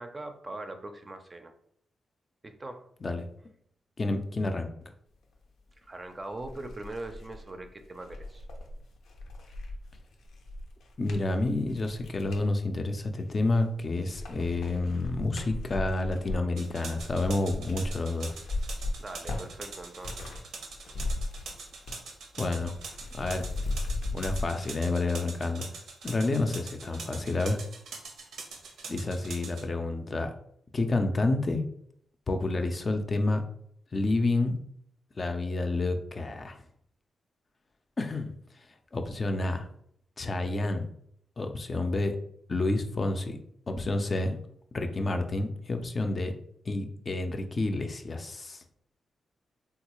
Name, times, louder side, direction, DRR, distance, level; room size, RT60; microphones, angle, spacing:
voice 1, 0.0-1.5 2.4-2.9 5.8-8.5 19.0-20.4, right 2 dB, 30° right, 6 dB, 0.4 m, -41 dB
voice 2, 4.0-4.7 11.0-18.4 22.4-22.7 23.1-23.4 24.1-25.7 26.0-27.6 28.9-30.3 30.7-31.6 32.3-33.4 33.9-34.6 35.2-36.6 38.0-38.3 38.9-39.7 40.2-40.8 41.4-42.2 42.5-43.4 43.7-44.4 44.7-46.3 46.7-48.6, left 2 dB, 40° left, 5 dB, 0.4 m, -29 dB
sound 1, 5.8-5.9 6.3-12.5 13.1-13.7 14.0-20.4 20.7-22.1 22.3-24.5, left 2 dB, 90° left, 0.6 m, -37 dB
sound 2, 16.6-29.6, right 4 dB, 90° right, 0.6 m, -43 dB
3.5 x 2.3 x 3.0 m, 0.69 s
cardioid pair, 85°, 0 cm